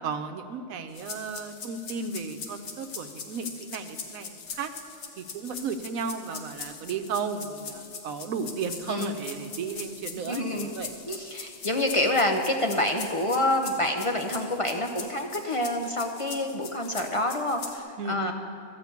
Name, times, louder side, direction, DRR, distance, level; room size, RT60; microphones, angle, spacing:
voice 1, 0.0-4.7 5.2-10.9 18.0-18.3, right 5 dB, 85° right, 7 dB, 1.1 m, -34 dB
sound 1, 0.9-17.8, left 5 dB, 75° left, 1.4 m, -41 dB
voice 2, 10.3-10.7 11.1-18.3, left 1 dB, 40° left, 3 dB, 0.4 m, -27 dB
13.0 x 5.8 x 8.2 m, 2.4 s
omnidirectional pair, 1.4 m